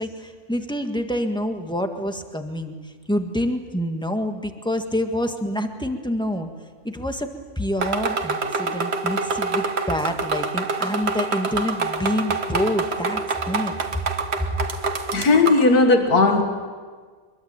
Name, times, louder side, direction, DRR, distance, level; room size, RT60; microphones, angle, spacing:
voice 1, 0.0-6.5 6.8-7.3 7.5-13.7, equal, 5° left, 5 dB, 1.6 m, -27 dB
sound 1, 7.8-15.7, right 4 dB, 45° right, 1.6 m, -26 dB
voice 2, 15.1-16.4, left 3 dB, 85° left, 5 dB, 2.3 m, -16 dB
24.5 x 22.5 x 8.9 m, 1.5 s
omnidirectional pair, 1.6 m